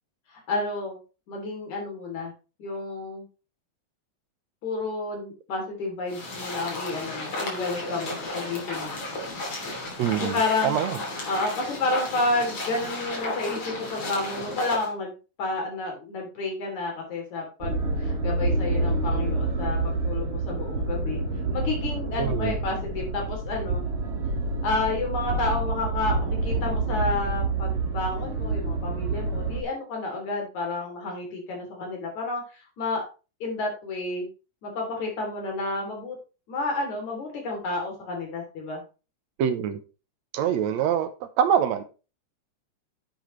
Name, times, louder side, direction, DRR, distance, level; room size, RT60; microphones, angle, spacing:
voice 1, 0.3-1.0 1.3-2.3 2.6-3.3 4.6-9.0 10.2-10.8 11.3-21.2 21.5-23.9 24.6-33.1 33.4-34.3 34.6-36.2 36.5-38.8, left 3 dB, 75° left, 4.7 m, -30 dB
sound 1, 6.1-14.9, left 2 dB, 50° left, 4.0 m, -34 dB
voice 2, 10.0-11.0 22.2-22.6 39.4-39.8 40.3-41.8, right 9 dB, 75° right, 2.0 m, -25 dB
sound 2, 17.6-29.6, right 3 dB, 55° right, 2.6 m, -27 dB
10.5 x 8.1 x 3.2 m
omnidirectional pair, 3.3 m